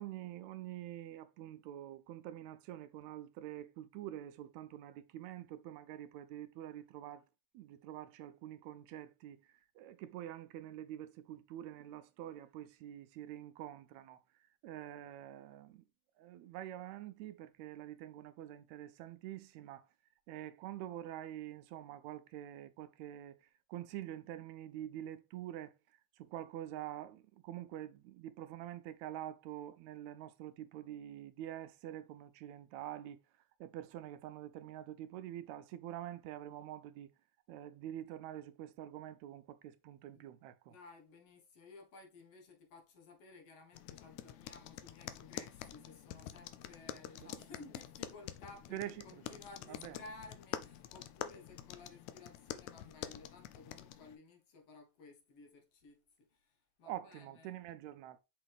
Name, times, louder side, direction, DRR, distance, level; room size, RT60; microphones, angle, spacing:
voice 1, 0.0-7.3 7.5-15.8 16.2-19.9 20.3-33.2 33.6-37.1 37.5-40.8 47.2-47.5 48.7-49.4 49.7-50.0 56.8-58.2, right 12 dB, 80° right, 1.8 m, -46 dB
voice 2, 40.7-57.6, left 3 dB, 60° left, 2.3 m, -56 dB
sound 1, 43.7-54.2, left 12 dB, 85° left, 1.9 m, -47 dB
6.0 x 5.6 x 3.5 m
omnidirectional pair, 3.3 m